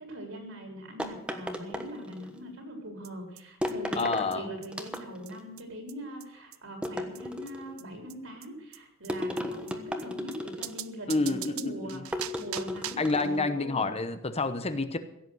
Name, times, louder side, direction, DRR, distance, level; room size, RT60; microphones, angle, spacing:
voice 1, 0.0-13.9, equal, 70° right, 3 dB, 4.0 m, -42 dB
sound 1, 1.0-2.4 3.6-4.3 4.7-5.4 6.8-7.7 9.1-10.9 12.1-13.4, left 1 dB, 5° right, 1.2 m, -35 dB
sound 2, 3.0-3.1 3.4-3.5 3.7-3.8 4.0-4.1 4.3-4.4 4.6-4.7 4.9-5.0 5.3-5.4 5.6-5.7 5.9-6.0 6.2-6.3 6.5-6.6 6.8-6.9 7.1-7.2 7.5-7.6 7.8-7.9 8.1-8.2 8.4-8.5 8.7-8.8 9.0-9.1 9.4-9.5 9.7-9.8 10.0-10.1 10.3-10.4 10.6-13.2, right 13 dB, 85° right, 0.6 m, -41 dB
voice 2, 4.0-4.5 11.1-12.0 13.0-15.0, left 3 dB, 30° left, 10 dB, 0.9 m, -29 dB
16.0 x 8.1 x 7.9 m, 0.82 s
head